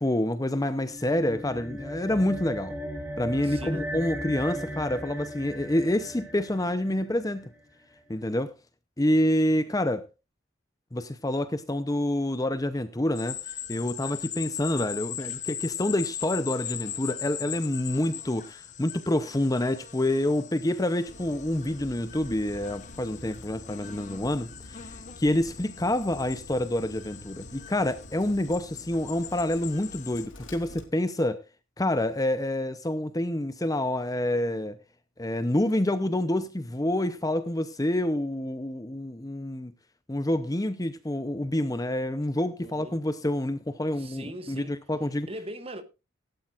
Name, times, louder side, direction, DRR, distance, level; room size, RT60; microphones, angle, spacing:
voice 1, 0.0-2.8 3.2-7.5 8.1-8.5 9.0-10.1 10.9-13.4 13.7-31.4 31.8-34.8 35.2-39.7 40.1-45.3, left 1 dB, 15° left, 0.7 m, -27 dB
sound 1, 0.8-7.4, equal, 10° right, 2.4 m, -37 dB
voice 2, 3.4-3.9 42.6-43.0 44.0-44.7 45.3-45.8, right 1 dB, 30° right, 1.4 m, -40 dB
sound 2, 13.2-30.3, left 10 dB, 35° left, 1.0 m, -40 dB
Bird, 21.1-30.9, left 1 dB, 70° left, 3.6 m, -48 dB
17.5 x 11.5 x 2.5 m
head